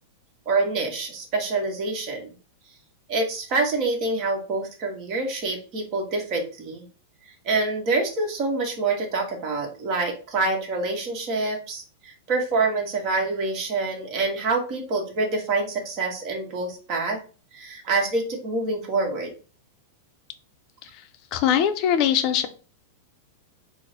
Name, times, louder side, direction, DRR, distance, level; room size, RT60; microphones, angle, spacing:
voice 1, 0.4-2.3 3.1-6.8 7.4-17.2 17.5-19.3, right 3 dB, 40° right, 1 dB, 1.4 m, -26 dB
voice 2, 21.3-22.5, left 9 dB, 45° left, 8 dB, 0.6 m, -21 dB
4.4 x 2.2 x 4.2 m, 0.37 s
supercardioid pair, 140°, 0 cm